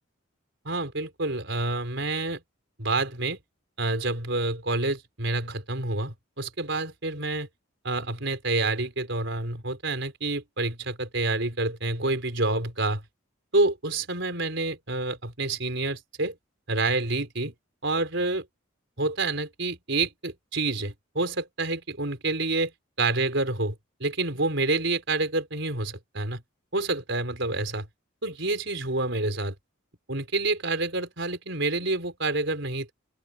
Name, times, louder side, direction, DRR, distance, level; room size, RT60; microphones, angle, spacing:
voice 1, 0.6-2.4 2.8-3.4 3.8-7.5 7.8-13.0 13.5-16.3 16.7-17.5 17.8-18.4 19.0-22.7 23.0-23.7 24.0-26.4 26.7-27.9 28.2-29.5 30.1-32.9, right 2 dB, 60° right, 5.0 m, -28 dB
open air
head